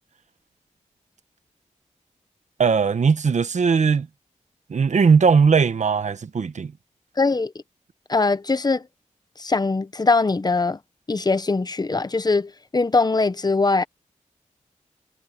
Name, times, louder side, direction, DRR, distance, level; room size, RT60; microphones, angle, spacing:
voice 1, 2.6-4.1 4.7-6.7, right 5 dB, 70° right, 1.1 m, -19 dB
voice 2, 7.2-7.5 8.1-8.8 9.4-10.8 11.1-13.8, left 3 dB, 30° left, 0.8 m, -21 dB
wide cardioid pair, 85°, 13 cm